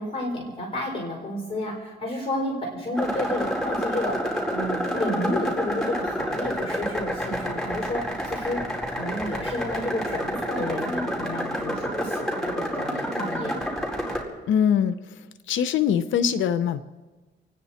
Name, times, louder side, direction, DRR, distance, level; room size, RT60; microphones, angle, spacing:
voice 1, 0.0-13.7, left 1 dB, 25° left, 1 dB, 4.5 m, -31 dB
sound 1, 3.0-14.2, equal, 5° left, 4.3 m, -29 dB
voice 2, 14.5-15.1 15.5-16.8, left 8 dB, 80° left, 13 dB, 0.7 m, -22 dB
29.0 x 10.0 x 4.3 m, 1.3 s
cardioid pair, 90°, 20 cm